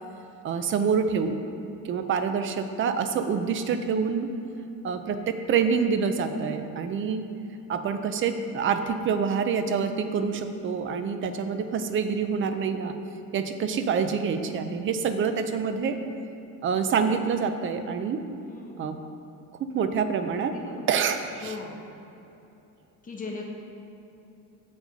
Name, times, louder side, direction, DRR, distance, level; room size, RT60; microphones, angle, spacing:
voice 1, 0.4-1.4 1.8-4.3 4.8-7.2 7.7-12.9 13.3-16.0 16.6-18.2 18.8-18.9 19.6-20.5 20.9-21.5, right 6 dB, 35° right, 8 dB, 0.4 m, -26 dB
voice 2, 18.4-19.0 20.3-20.9 21.4-21.8 23.0-23.4, left 3 dB, 20° left, -1 dB, 0.9 m, -39 dB
7.1 x 6.3 x 5.1 m, 2.9 s
cardioid pair, 165°, 37 cm